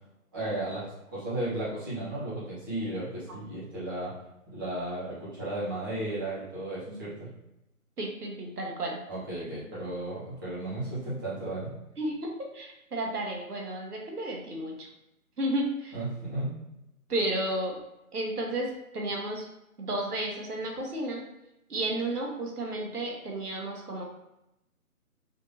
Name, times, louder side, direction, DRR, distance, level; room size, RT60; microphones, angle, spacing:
voice 1, 0.3-4.1 4.5-7.3 9.1-11.7 15.9-16.5, right 1 dB, 15° right, -10 dB, 1.0 m, -34 dB
voice 2, 8.0-9.0 12.0-14.9 15.4-16.0 17.1-17.8 18.1-19.5 19.8-21.2 21.7-24.0, right 1 dB, 85° right, 0 dB, 1.2 m, -32 dB
5.1 x 2.8 x 2.6 m, 0.87 s
hypercardioid pair, 160°, 45 cm